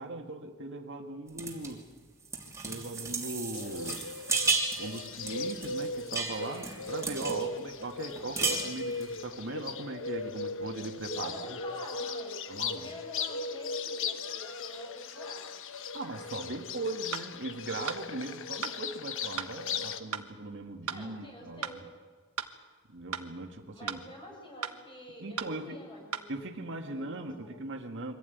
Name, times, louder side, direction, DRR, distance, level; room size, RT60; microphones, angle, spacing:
voice 1, 0.0-1.8 2.6-4.1 4.8-11.6 12.5-12.9 15.9-21.8 22.9-24.0 25.2-25.8 26.3-28.1, right 2 dB, 55° right, 3 dB, 1.8 m, -39 dB
sound 1, 1.4-1.7 2.2-7.4 7.8-7.9 8.2-9.1, right 4 dB, 15° right, 2.9 m, -33 dB
Bird, 3.5-20.0, left 4 dB, 60° left, 1.1 m, -38 dB
voice 2, 7.3-7.8 11.1-12.4 12.6-15.4 20.9-21.8 23.7-26.3 26.8-27.6, left 1 dB, 20° left, 0 dB, 7.1 m, -47 dB
sound 2, 17.1-17.3 17.9-18.0 18.6-18.8 19.4-19.5 20.1-20.3 20.9-21.0 21.6-21.8 22.4-22.5 23.1-23.3 23.9-24.0 24.6-24.8 25.4-25.5 26.1-26.3, right 7 dB, 75° right, 1.3 m, -35 dB
24.0 x 15.5 x 9.3 m, 1.4 s
head